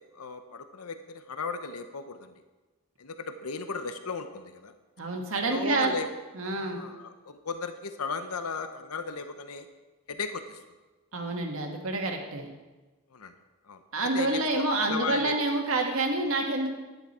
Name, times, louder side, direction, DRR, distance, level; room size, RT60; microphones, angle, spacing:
voice 1, 0.0-2.3 3.0-4.7 5.5-6.1 6.5-9.7 10.1-10.6 13.1-13.3 13.7-15.4, left 4 dB, 90° left, 9 dB, 0.8 m, -36 dB
voice 2, 5.0-6.0 6.4-6.8 11.1-12.5 13.9-16.7, right 2 dB, 65° right, 2 dB, 1.7 m, -28 dB
11.0 x 11.0 x 4.3 m, 1.2 s
head